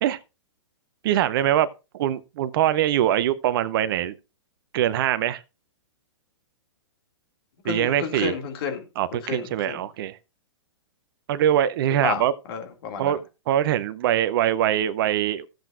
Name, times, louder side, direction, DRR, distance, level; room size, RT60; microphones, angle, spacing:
voice 1, 1.0-1.7 1.9-4.2 4.7-5.4 7.6-8.3 9.0-10.2 11.3-12.3 13.0-13.2 13.5-15.5, right 11 dB, 50° right, 0.6 m, -23 dB
voice 2, 7.6-8.8 9.1-9.8 12.0-12.2 12.5-13.2, left 6 dB, 50° left, 2.2 m, -31 dB
15.0 x 7.7 x 2.4 m
hypercardioid pair, 120°, 15 cm